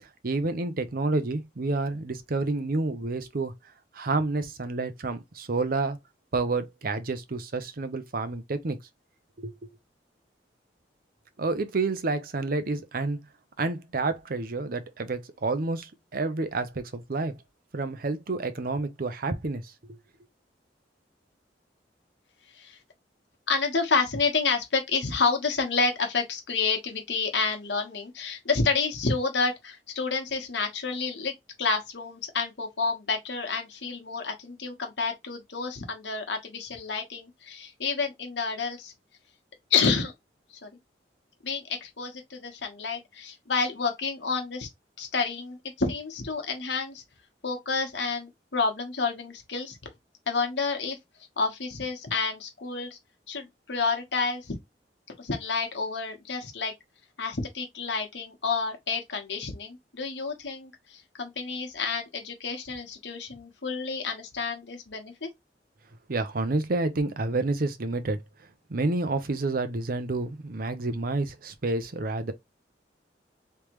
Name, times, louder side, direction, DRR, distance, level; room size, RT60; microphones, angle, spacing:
voice 1, 0.0-3.5 3.9-6.0 6.3-8.8 9.4-9.6 11.4-13.2 13.6-17.3 17.7-20.0 66.1-68.2 68.7-72.3, right 3 dB, 55° right, 0.7 m, -29 dB
voice 2, 22.5-22.8 23.5-31.3 31.6-38.9 39.7-40.1 40.5-40.7 41.4-44.7 45.0-47.0 47.4-49.9 50.3-51.0 51.4-53.0 53.3-54.5 55.2-56.7 57.2-65.3, left 4 dB, 85° left, 1.2 m, -29 dB
3.5 x 3.2 x 3.0 m
head